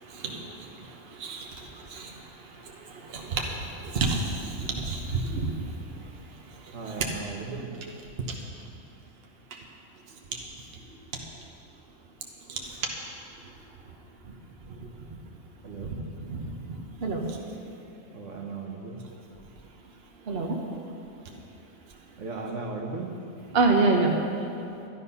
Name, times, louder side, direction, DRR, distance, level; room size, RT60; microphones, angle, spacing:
voice 1, 0.0-5.7 6.6-7.0 7.8-7.9 8.3-8.4 12.5-12.9 14.3-14.4 15.8-17.4 20.3-20.6 23.5-24.1, right 3 dB, 50° right, 1 dB, 1.3 m, -29 dB
voice 2, 6.7-7.7 15.6-15.9 18.1-19.0 22.2-23.2, right 4 dB, 70° right, 1 dB, 1.6 m, -36 dB
12.5 x 10.5 x 5.6 m, 2.8 s
omnidirectional pair, 1.3 m